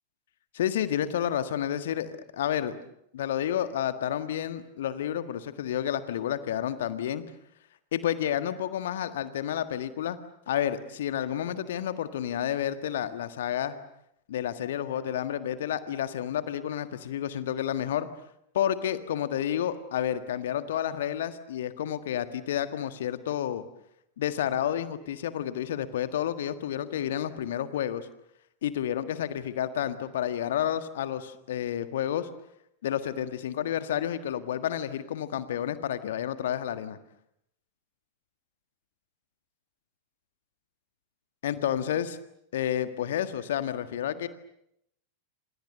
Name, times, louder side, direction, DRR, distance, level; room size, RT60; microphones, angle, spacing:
voice 1, 0.5-2.8 3.1-7.2 7.9-10.2 10.5-13.8 14.3-18.1 18.5-23.6 24.2-28.1 28.6-32.3 32.8-37.0 41.4-42.2 42.5-44.3, left 10 dB, 60° left, 11 dB, 1.7 m, -30 dB
28.0 x 28.0 x 6.7 m, 0.75 s
figure-of-eight pair, 90°, 0 cm